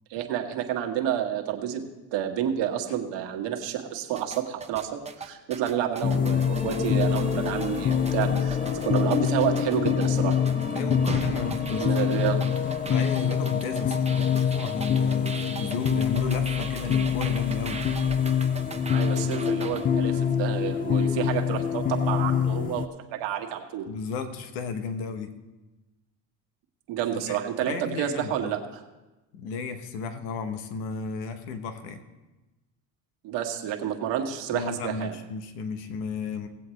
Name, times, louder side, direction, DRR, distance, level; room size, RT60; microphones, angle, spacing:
voice 1, 0.1-4.9 5.2-10.4 11.8-12.5 18.9-22.8 23.1-23.9 26.9-28.8 33.2-35.1, right 10 dB, 65° right, 2 dB, 1.6 m, -29 dB
sound 1, 4.1-19.9, right 3 dB, 15° right, 0.7 m, -39 dB
sound 2, 6.0-22.9, left 7 dB, 20° left, 0.3 m, -25 dB
voice 2, 10.7-12.5 12.8-17.8 23.9-25.4 27.1-27.4 27.7-28.5 29.3-32.0 34.5-36.5, left 5 dB, 90° left, 9 dB, 1.1 m, -34 dB
18.0 x 7.8 x 3.2 m, 1.1 s
supercardioid pair, 100°, 47 cm